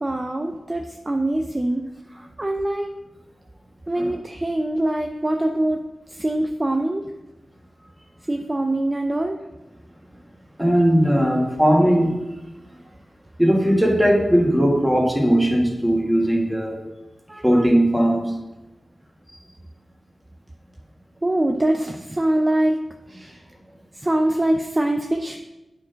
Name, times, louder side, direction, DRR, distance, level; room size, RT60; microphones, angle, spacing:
voice 1, 0.0-3.0 3.9-5.8 6.1-7.1 8.3-9.4 17.3-17.7 21.2-22.8 23.1-23.4 23.9-25.4, right 1 dB, 25° right, 4 dB, 0.6 m, -24 dB
voice 2, 10.6-12.2 13.4-16.8 17.4-18.3, equal, 5° right, -1 dB, 1.9 m, -18 dB
8.8 x 4.6 x 5.1 m, 1.0 s
wide cardioid pair, 80°, 0 cm